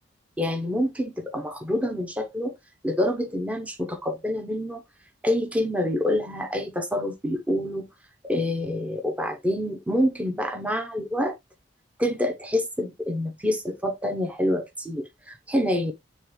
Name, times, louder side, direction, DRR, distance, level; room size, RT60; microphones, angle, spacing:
voice 1, 0.4-2.6 2.8-4.8 5.2-7.9 8.2-11.4 12.0-15.9, left 1 dB, 5° right, 0.9 m, -27 dB
8.7 x 3.5 x 3.1 m
head